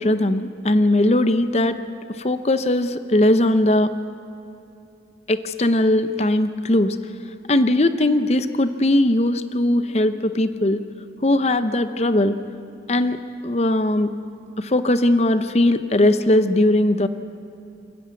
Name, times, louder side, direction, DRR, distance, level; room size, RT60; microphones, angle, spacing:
voice 1, 0.0-1.7 2.2-3.9 5.3-7.0 7.5-10.8 11.2-12.4 12.9-13.2 13.4-14.1 14.6-17.1, left 1 dB, 35° left, 11 dB, 0.7 m, -19 dB
28.5 x 10.0 x 9.4 m, 2.8 s
head